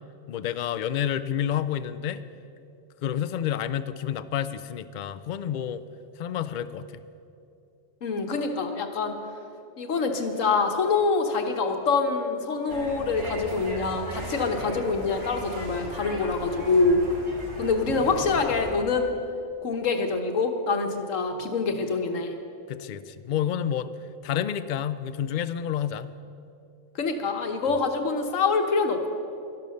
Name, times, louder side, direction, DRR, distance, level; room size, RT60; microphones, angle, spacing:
voice 1, 0.3-2.2 3.0-5.8 6.2-6.9 22.7-23.9 24.2-26.1, left 9 dB, 60° left, 14 dB, 0.5 m, -29 dB
voice 2, 8.0-9.2 9.8-17.0 17.6-19.1 19.6-22.3 26.9-29.1, left 4 dB, 85° left, 5 dB, 1.5 m, -25 dB
sound 1, 12.7-18.7, right 1 dB, 80° right, 2.9 m, -37 dB
12.0 x 12.0 x 6.5 m, 2.6 s
omnidirectional pair, 1.3 m